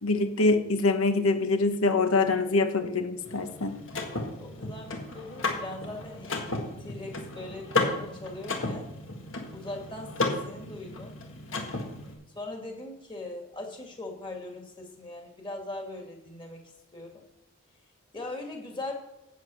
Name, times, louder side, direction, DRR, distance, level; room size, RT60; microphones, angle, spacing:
voice 1, 0.0-3.8, left 3 dB, 80° left, 8 dB, 1.1 m, -25 dB
Car / Mechanisms, 3.2-12.1, left 3 dB, 65° left, 1.8 m, -34 dB
voice 2, 4.4-6.4 6.8-8.9 9.5-11.1 12.4-16.6 16.9-17.2 18.1-18.9, left 2 dB, 20° left, 2 dB, 2.1 m, -40 dB
8.4 x 8.3 x 6.3 m, 0.97 s
head